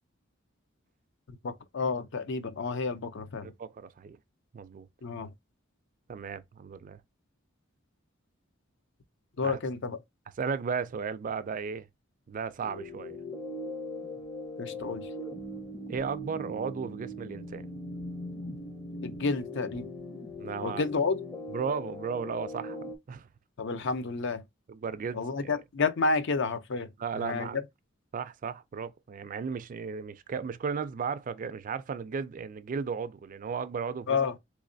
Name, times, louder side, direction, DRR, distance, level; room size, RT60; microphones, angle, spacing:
voice 1, 1.4-3.5 5.0-5.3 9.4-10.0 14.6-15.1 19.0-19.9 20.6-21.2 23.6-24.4 25.1-26.9 27.2-27.5 34.1-34.3, left 4 dB, 65° left, 0.6 m, -30 dB
voice 2, 3.4-4.2 4.5-4.9 6.1-7.0 9.4-9.6 10.4-11.9 12.3-13.2 15.9-17.7 20.4-20.8 21.5-22.8 23.1-23.3 24.7-25.6 27.0-27.6 28.1-34.2, right 6 dB, 40° right, 0.4 m, -35 dB
sound 1, 12.6-23.0, left 1 dB, 20° left, 0.6 m, -40 dB
3.6 x 3.1 x 2.6 m
head